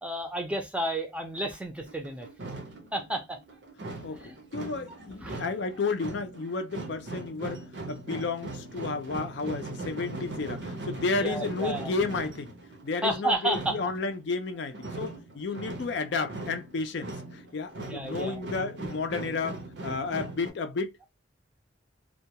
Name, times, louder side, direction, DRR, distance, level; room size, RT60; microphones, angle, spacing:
voice 1, 0.0-2.3 2.9-3.4 4.2-4.4 5.2-5.4 11.2-11.9 13.0-13.8 17.9-18.4, right 1 dB, 5° right, 0.5 m, -31 dB
sound 1, 1.9-20.5, right 2 dB, 65° right, 0.6 m, -40 dB
voice 2, 4.5-12.5 12.8-21.1, left 4 dB, 65° left, 0.4 m, -32 dB
2.2 x 2.2 x 2.8 m
head